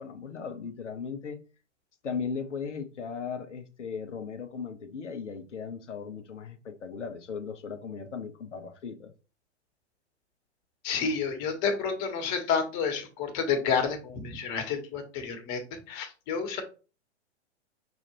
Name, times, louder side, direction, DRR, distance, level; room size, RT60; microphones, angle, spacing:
voice 1, 0.0-1.4 2.0-9.1, left 6 dB, 80° left, 0.9 m, -37 dB
voice 2, 10.8-16.6, left 6 dB, 40° left, 1.4 m, -30 dB
6.0 x 2.6 x 3.0 m
hypercardioid pair, 115°, 35 cm